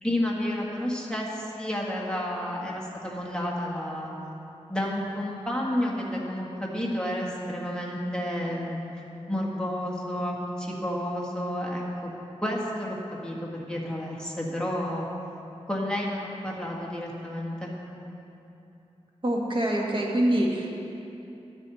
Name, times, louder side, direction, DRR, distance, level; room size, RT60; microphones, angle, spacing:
voice 1, 0.0-4.1 4.7-8.8 9.3-12.1 12.4-15.1 15.7-17.7, left 1 dB, 5° left, -4 dB, 1.9 m, -31 dB
voice 2, 19.2-20.8, right 1 dB, 45° right, -2 dB, 1.7 m, -25 dB
12.0 x 9.6 x 4.2 m, 2.8 s
wide cardioid pair, 75°, 11 cm